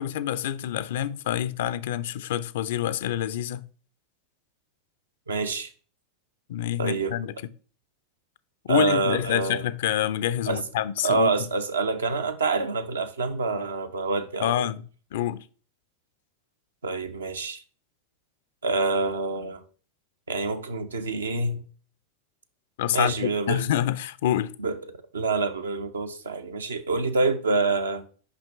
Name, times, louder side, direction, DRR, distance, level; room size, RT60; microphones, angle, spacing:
voice 1, 0.0-3.6 6.5-7.3 8.7-11.3 14.4-14.8 15.1-15.4 22.8-24.5, left 11 dB, 60° left, 0.4 m, -27 dB
voice 2, 5.3-5.7 6.8-7.1 8.7-9.6 10.5-10.6 11.0-14.7 16.8-17.6 18.6-19.6 20.3-21.6 22.9-23.7 24.6-24.8 25.1-28.0, right 3 dB, 80° right, 0.6 m, -26 dB
5.9 x 5.2 x 3.2 m
figure-of-eight pair, 85°, 0 cm